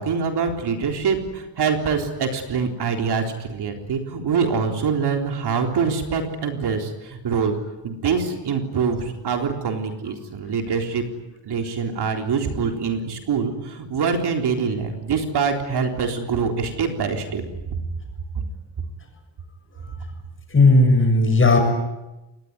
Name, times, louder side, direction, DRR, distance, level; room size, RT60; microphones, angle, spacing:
voice 1, 0.0-7.6 7.8-11.0 11.4-17.4, right 5 dB, 60° right, 4 dB, 3.9 m, -24 dB
voice 2, 20.5-21.6, left 2 dB, 30° left, 4 dB, 7.2 m, -15 dB
27.5 x 20.5 x 9.7 m, 1.0 s
wide cardioid pair, 145°, 44 cm